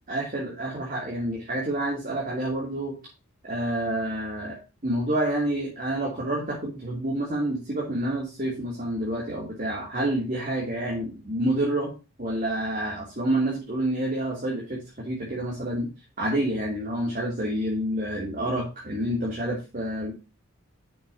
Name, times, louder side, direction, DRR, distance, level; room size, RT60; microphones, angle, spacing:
voice 1, 0.1-2.9 3.4-11.9 12.2-15.9 16.2-20.1, right 1 dB, 40° right, -3 dB, 2.9 m, -28 dB
10.5 x 7.2 x 2.7 m, 0.30 s
head